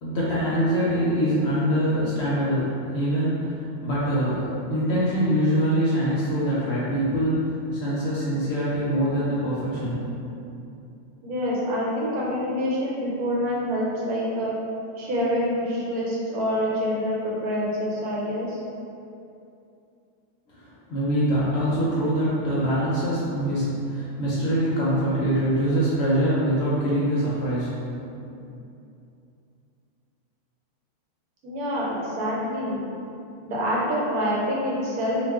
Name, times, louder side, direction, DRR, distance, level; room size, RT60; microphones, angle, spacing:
voice 1, 0.0-10.0 20.5-27.7 28.1-28.5, equal, 65° left, -8 dB, 0.7 m, -24 dB
voice 2, 11.2-14.5 15.0-18.6 31.4-32.8 33.4-35.3, equal, 90° right, -5 dB, 1.2 m, -26 dB
2.3 x 2.2 x 3.4 m, 2.7 s
omnidirectional pair, 1.5 m